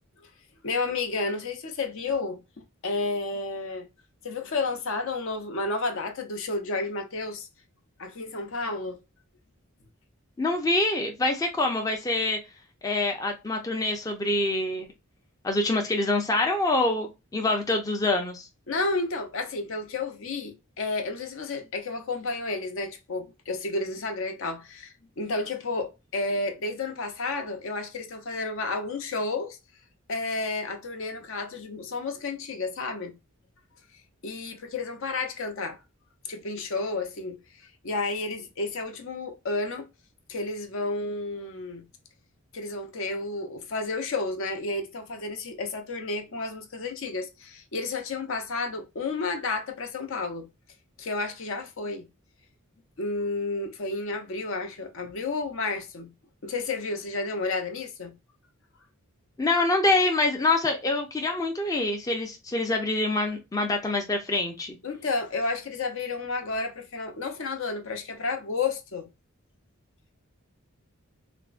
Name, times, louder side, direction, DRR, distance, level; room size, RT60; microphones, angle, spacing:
voice 1, 0.6-2.4 2.8-3.9 4.2-7.5 8.0-9.0 18.7-29.6 30.1-33.2 34.2-35.8 36.2-39.9 40.3-41.8 42.5-50.5 51.0-52.1 53.0-56.1 56.4-58.1 64.8-69.1, left 3 dB, 65° left, 0.6 m, -31 dB
voice 2, 10.4-12.4 12.8-14.9 15.4-18.5 59.4-64.8, left 2 dB, 15° left, 0.4 m, -25 dB
3.4 x 2.1 x 2.4 m
head